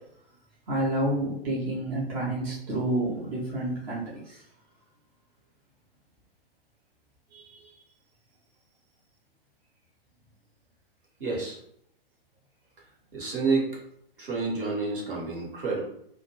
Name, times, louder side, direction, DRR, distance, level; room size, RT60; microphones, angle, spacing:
voice 1, 0.7-4.4 7.3-7.8, right 1 dB, 20° right, -5 dB, 0.5 m, -29 dB
voice 2, 11.2-11.6 13.1-13.7 14.2-15.8, right 4 dB, 60° right, -3 dB, 1.0 m, -29 dB
2.2 x 2.1 x 2.9 m, 0.72 s
figure-of-eight pair, 110°, 29 cm